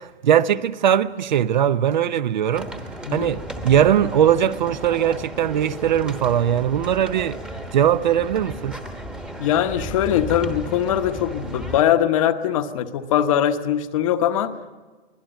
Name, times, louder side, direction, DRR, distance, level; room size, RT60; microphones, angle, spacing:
voice 1, 0.0-2.7 3.1-7.4 7.7-8.8, right 10 dB, 45° right, 0.6 m, -20 dB
sound 1, 2.5-11.8, equal, 5° right, 1.1 m, -34 dB
voice 2, 3.1-3.4 9.4-14.7, left 10 dB, 30° left, 1.0 m, -21 dB
23.5 x 17.0 x 9.0 m
hypercardioid pair, 160°, 32 cm